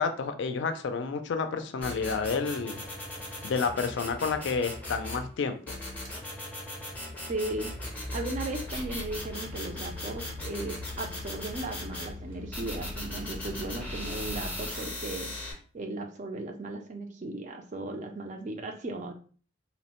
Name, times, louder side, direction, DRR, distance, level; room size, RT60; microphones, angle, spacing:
voice 1, 0.0-2.8 3.4-5.8, left 5 dB, 60° left, 8 dB, 0.3 m, -30 dB
sound 1, 1.8-5.2 5.7-12.1 12.5-15.5, left 1 dB, 10° left, 0.6 m, -39 dB
sound 2, 6.0-6.2 7.2-15.2, left 2 dB, 75° right, 0.7 m, -43 dB
voice 2, 7.3-7.7 8.1-15.3 15.7-19.1, right 2 dB, 35° right, 5 dB, 0.4 m, -36 dB
2.9 x 2.1 x 2.9 m, 0.41 s
head